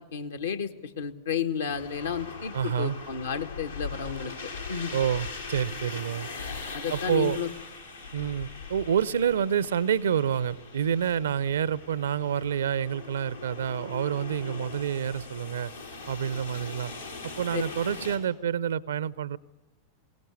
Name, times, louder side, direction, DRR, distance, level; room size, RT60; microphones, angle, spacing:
voice 1, 0.0-4.9 6.7-7.5 8.2-8.3 17.5-17.6, left 7 dB, 65° left, 6 dB, 1.5 m, -32 dB
sound 1, 1.7-18.2, left 4 dB, 85° left, 4.6 m, -41 dB
voice 2, 2.5-3.0 4.9-6.3 6.9-7.4 8.1-15.7 16.1-16.9 17.4-19.4, right 8 dB, 65° right, 21 dB, 0.7 m, -28 dB
22.5 x 18.5 x 8.3 m, 1.1 s
figure-of-eight pair, 90°, 0 cm